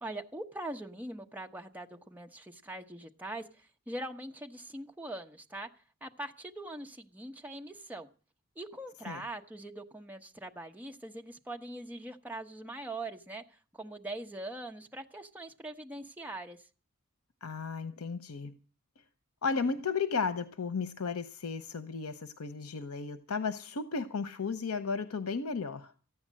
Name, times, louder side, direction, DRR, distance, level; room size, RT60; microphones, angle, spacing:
voice 1, 0.0-5.7 6.0-8.1 8.5-16.6, right 1 dB, 10° right, 1.1 m, -42 dB
voice 2, 17.4-18.5 19.4-25.9, left 5 dB, 80° left, 0.8 m, -34 dB
14.5 x 9.6 x 7.5 m
head